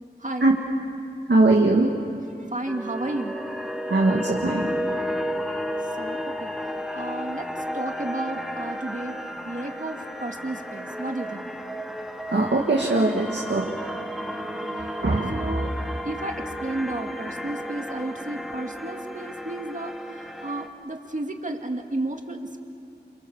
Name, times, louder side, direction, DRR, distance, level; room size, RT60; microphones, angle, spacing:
voice 1, 1.3-1.9 3.9-4.7 12.3-13.7 14.7-15.5, right 2 dB, 90° right, -2 dB, 2.1 m, -21 dB
voice 2, 2.4-3.3 6.0-6.5 6.9-9.1 9.5-11.5 14.4-14.8 15.3-15.7 16.0-19.9 20.4-22.4, right 2 dB, 45° right, 3 dB, 2.3 m, -32 dB
sound 1, 2.7-20.7, equal, ahead, 1.7 m, -33 dB
28.0 x 28.0 x 7.4 m, 2.6 s
wide cardioid pair, 60°, 18 cm